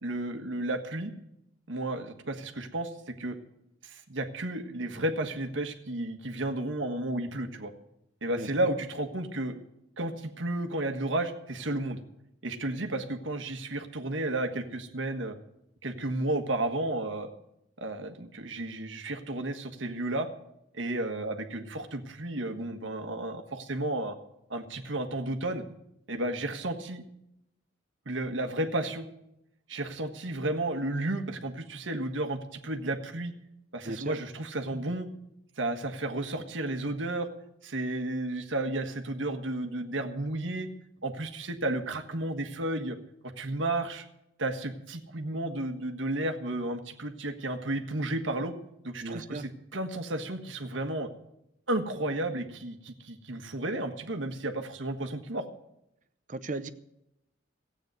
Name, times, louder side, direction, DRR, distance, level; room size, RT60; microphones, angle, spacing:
voice 1, 0.0-1.1 1.7-3.4 3.8-7.7 8.2-9.5 10.0-12.0 12.4-15.4 15.8-17.3 17.8-20.3 20.7-24.2 24.5-25.6 26.1-27.0 28.0-29.1 29.7-33.3 33.7-35.1 35.6-37.3 37.6-40.7 41.0-43.0 43.4-44.1 44.4-48.5 48.8-51.1 51.7-55.5, right 1 dB, 85° right, 6 dB, 1.5 m, -32 dB
voice 2, 33.8-34.2 49.0-49.4 56.3-56.7, right 2 dB, 40° right, 12 dB, 0.7 m, -36 dB
14.5 x 9.0 x 7.9 m, 0.82 s
head